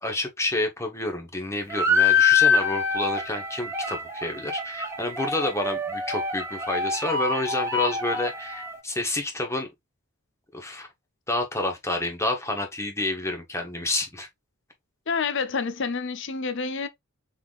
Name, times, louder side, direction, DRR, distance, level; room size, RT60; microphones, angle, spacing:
voice 1, 0.0-9.7 10.5-10.9 11.3-14.3, left 2 dB, 15° left, 1.0 m, -29 dB
sound 1, 1.7-8.8, left 4 dB, 15° right, 1.4 m, -25 dB
voice 2, 15.1-16.9, left 5 dB, 55° left, 0.7 m, -28 dB
5.6 x 3.8 x 2.4 m
head